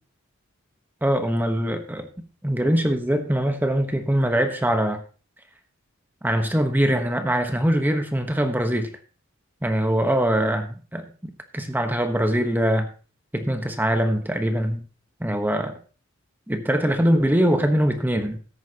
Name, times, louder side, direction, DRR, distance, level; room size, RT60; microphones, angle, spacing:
voice 1, 1.0-2.1 2.4-5.0 6.2-8.9 9.6-11.0 11.5-12.9 13.3-14.8 15.2-15.8 16.5-18.4, equal, 10° right, 1.1 m, -22 dB
14.0 x 10.0 x 2.9 m
head